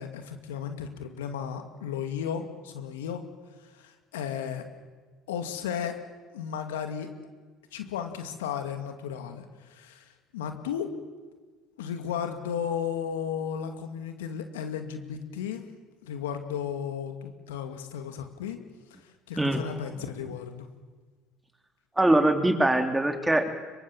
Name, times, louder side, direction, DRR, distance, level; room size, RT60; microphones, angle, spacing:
voice 1, 0.0-3.2 3.6-4.7 5.3-6.0 6.3-7.1 7.7-10.9 11.8-15.7 16.0-18.6 19.0-20.7, left 8 dB, 90° left, 7 dB, 2.4 m, -34 dB
voice 2, 22.0-23.5, right 1 dB, 10° right, 6 dB, 3.3 m, -22 dB
24.5 x 23.5 x 7.4 m, 1.4 s
hypercardioid pair, 75°, 0 cm